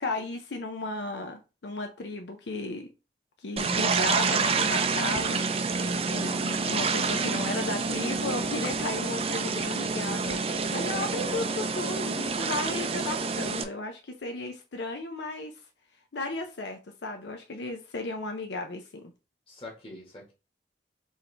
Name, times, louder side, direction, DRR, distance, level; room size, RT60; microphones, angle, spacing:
voice 1, 0.0-2.9 3.4-5.4 6.1-15.5 16.1-19.1, left 2 dB, 80° left, 0.6 m, -35 dB
sound 1, 3.6-13.6, right 4 dB, 35° right, 0.4 m, -28 dB
voice 2, 5.7-6.1 11.0-11.2 19.5-20.3, left 1 dB, 30° left, 1.6 m, -45 dB
4.6 x 3.2 x 3.3 m
head